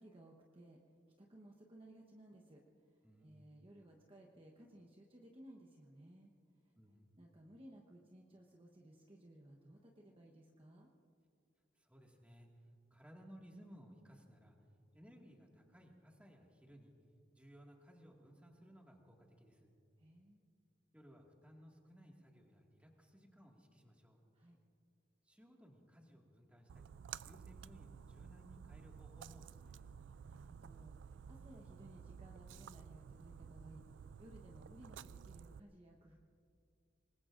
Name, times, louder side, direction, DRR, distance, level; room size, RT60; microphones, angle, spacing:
voice 1, 0.0-6.3 6.6-6.7 7.2-10.9 20.0-20.4 24.3-24.6 30.3-36.2, right 1 dB, 30° right, 0 dB, 1.0 m, -59 dB
voice 2, 3.0-3.5 6.8-7.1 11.8-14.7 14.9-16.9 17.3-19.7 20.9-24.2 25.2-26.9 27.2-30.0, equal, 5° right, 0 dB, 1.9 m, -60 dB
Splash splatter, 26.7-35.6, right 7 dB, 70° right, 0.3 m, -53 dB
25.5 x 20.5 x 2.6 m, 2.4 s
head